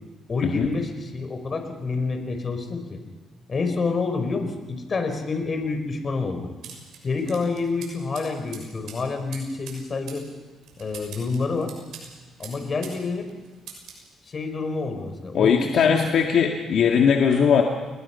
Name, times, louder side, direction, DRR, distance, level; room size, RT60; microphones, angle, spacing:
voice 1, 0.3-3.0 3.5-6.5 7.0-10.3 10.8-11.7 12.4-13.3 14.3-16.0, left 4 dB, 40° left, 6 dB, 4.3 m, -28 dB
sound 1, 6.6-13.0 13.3-14.0, right 6 dB, 85° right, 6.5 m, -44 dB
voice 2, 15.3-17.6, left 7 dB, 70° left, 2 dB, 2.1 m, -19 dB
29.5 x 21.0 x 5.7 m, 1.3 s
cardioid pair, 90°, 0 cm